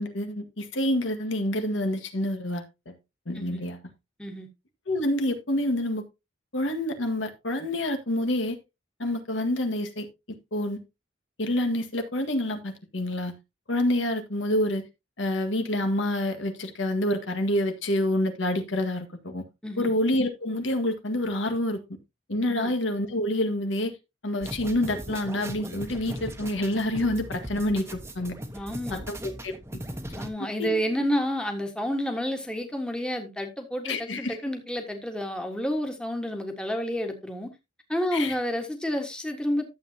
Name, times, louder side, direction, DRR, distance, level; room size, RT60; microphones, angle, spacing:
voice 1, 0.0-2.9 3.3-3.8 4.9-6.0 6.5-8.6 9.0-10.1 10.5-10.8 11.4-13.3 13.7-14.8 15.2-19.5 19.8-22.0 22.3-23.9 24.2-28.4 28.9-29.2 29.4-29.5 30.4-30.7 33.8-34.4 38.1-38.4, left 1 dB, 80° left, 1.8 m, -27 dB
sound 1, 24.4-30.3, equal, 15° right, 1.1 m, -38 dB
voice 2, 28.5-29.0 30.1-37.5 37.9-39.6, equal, 5° left, 1.5 m, -30 dB
12.0 x 7.8 x 2.8 m
head